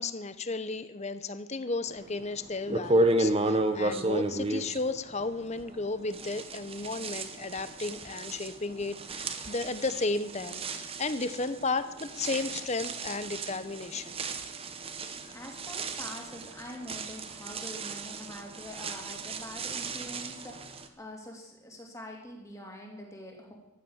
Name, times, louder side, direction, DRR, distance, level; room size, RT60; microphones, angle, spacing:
voice 1, 0.0-14.2 15.2-15.3, left 3 dB, 30° left, 13 dB, 0.8 m, -34 dB
sound 1, 2.1-2.2 2.7-5.8 6.1-20.9, right 2 dB, 25° right, 0.9 m, -33 dB
voice 2, 15.3-23.5, left 1 dB, 15° left, 0 dB, 2.8 m, -45 dB
14.5 x 11.0 x 7.2 m, 0.98 s
head